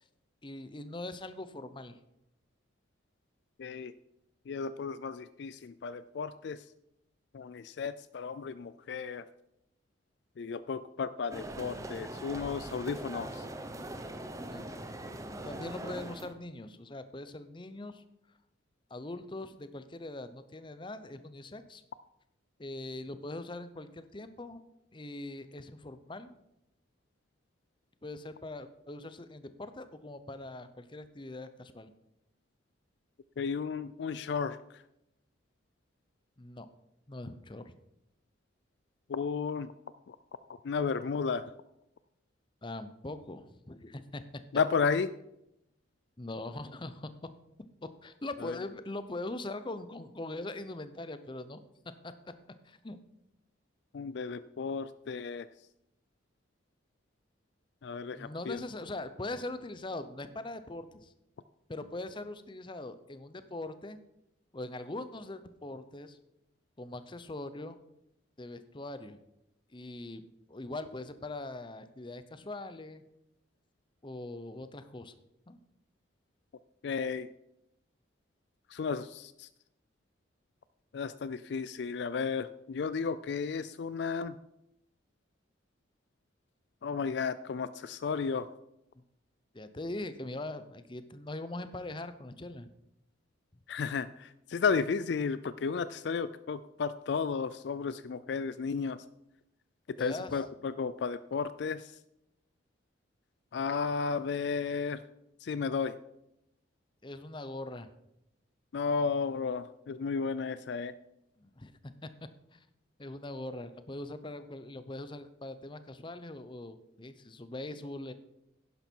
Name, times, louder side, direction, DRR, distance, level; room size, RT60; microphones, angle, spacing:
voice 1, 0.4-2.0 14.5-14.7 15.4-18.0 18.9-21.8 22.6-24.6 24.9-26.4 28.0-31.9 36.4-36.7 37.1-37.7 42.6-44.2 46.2-47.1 47.8-51.6 52.0-52.3 52.6-53.0 58.2-61.1 61.7-64.0 64.5-66.2 66.8-67.8 68.4-69.2 69.7-70.2 70.5-73.0 74.0-75.1 75.5-75.6 89.5-92.7 100.0-100.4 107.0-107.9 111.4-112.1 112.5-112.6 113.0-118.1, left 2 dB, 25° left, 12 dB, 0.7 m, -42 dB
voice 2, 3.6-3.9 4.5-6.6 7.3-9.2 10.4-13.5 33.4-34.6 39.1-39.7 40.1-40.2 40.6-41.5 44.5-45.1 48.4-48.6 53.9-55.5 57.8-58.6 76.8-77.3 78.7-79.5 80.9-84.4 86.8-88.5 93.7-99.0 100.0-101.9 103.5-105.0 105.4-105.9 108.7-110.9, left 5 dB, 60° left, 15 dB, 0.4 m, -33 dB
sound 1, 11.3-16.3, right 1 dB, 15° right, 0.8 m, -41 dB
11.0 x 10.5 x 4.5 m, 0.85 s
head